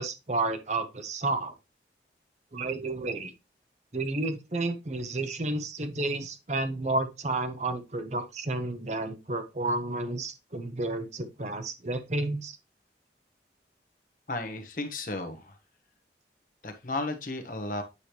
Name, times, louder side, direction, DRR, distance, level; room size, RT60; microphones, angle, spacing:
voice 1, 0.0-1.5 2.5-3.3 3.9-12.6, right 2 dB, 40° right, 9 dB, 0.9 m, -31 dB
voice 2, 14.3-15.6 16.6-17.8, left 2 dB, 50° left, 6 dB, 1.2 m, -34 dB
8.2 x 5.0 x 3.0 m, 0.24 s
head